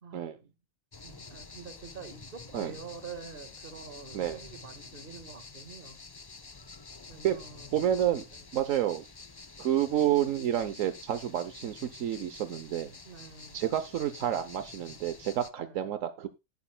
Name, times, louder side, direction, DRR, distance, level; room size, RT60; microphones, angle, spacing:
voice 1, 0.0-0.5 1.0-6.0 7.1-8.4 13.0-13.6 15.6-15.9, right 6 dB, 45° right, 9 dB, 1.7 m, -47 dB
sound 1, 0.9-15.5, left 3 dB, 30° left, 0.5 m, -48 dB
voice 2, 7.7-8.2 8.5-9.0 9.6-12.9 13.5-16.3, right 11 dB, 80° right, 11 dB, 1.1 m, -29 dB
18.0 x 8.5 x 2.2 m, 0.25 s
omnidirectional pair, 1.4 m